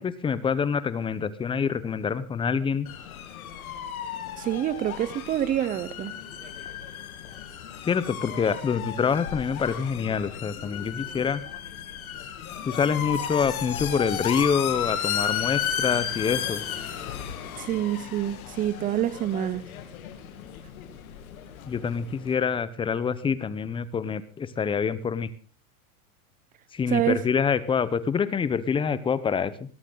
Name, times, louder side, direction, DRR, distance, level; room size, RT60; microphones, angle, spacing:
voice 1, 0.0-2.9 7.8-11.4 12.7-16.6 21.7-25.3 26.7-29.5, left 6 dB, 10° left, 0.7 m, -26 dB
sound 1, 2.9-22.3, left 9 dB, 85° left, 2.7 m, -34 dB
voice 2, 4.4-6.1 17.6-19.6 26.9-27.2, right 11 dB, 20° right, 0.7 m, -27 dB
18.5 x 13.0 x 3.9 m
supercardioid pair, 140°, 42 cm